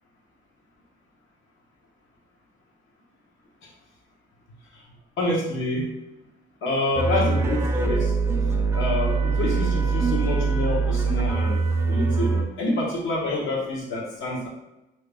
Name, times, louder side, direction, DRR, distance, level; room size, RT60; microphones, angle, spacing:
voice 1, 5.2-5.9 6.6-8.1 8.7-11.6 11.9-14.5, left 2 dB, 85° left, -3 dB, 1.1 m, -27 dB
sound 1, 6.9-12.4, right 4 dB, 15° right, 0.4 m, -23 dB
2.8 x 2.8 x 3.4 m, 0.94 s
cardioid pair, 90°, 20 cm